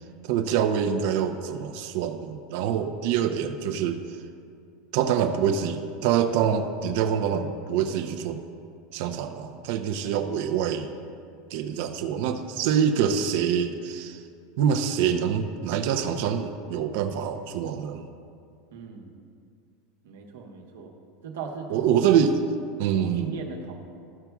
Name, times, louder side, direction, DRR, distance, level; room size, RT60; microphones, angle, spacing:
voice 1, 0.2-4.0 4.9-8.4 8.9-10.9 11.5-14.2 14.6-18.1 21.7-22.4 22.8-23.4, right 8 dB, 65° right, 6 dB, 0.6 m, -25 dB
voice 2, 18.7-19.1 20.0-20.9 21.2-21.8 23.0-23.8, right 5 dB, 85° right, 1 dB, 1.1 m, -38 dB
13.5 x 5.8 x 2.3 m, 2.4 s
supercardioid pair, 125°, 0 cm